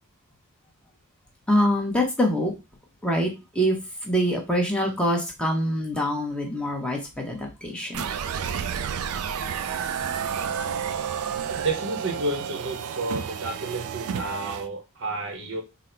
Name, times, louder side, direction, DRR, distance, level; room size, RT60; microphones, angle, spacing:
voice 1, 1.5-2.5 3.0-3.8 4.0-8.0, equal, 5° left, 0 dB, 0.8 m, -25 dB
sound 1, 7.9-14.7, right 7 dB, 75° right, 0.4 m, -30 dB
voice 2, 11.5-15.6, right 2 dB, 55° right, 3 dB, 0.8 m, -31 dB
3.8 x 2.0 x 4.3 m, 0.26 s
head